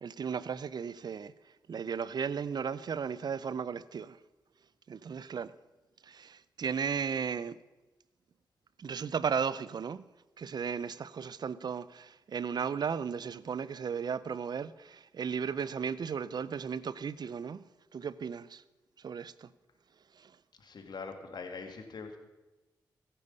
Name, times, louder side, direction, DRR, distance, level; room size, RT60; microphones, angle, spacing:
voice 1, 0.0-1.3 1.7-4.2 4.9-5.5 6.0-7.6 8.8-10.0 10.4-17.6 17.9-18.6 19.0-19.5 20.2-20.3, right 6 dB, 60° right, 0.5 m, -35 dB
voice 2, 20.6-22.2, left 4 dB, 65° left, 2.1 m, -43 dB
16.0 x 9.9 x 5.4 m
cardioid pair, 55°, 8 cm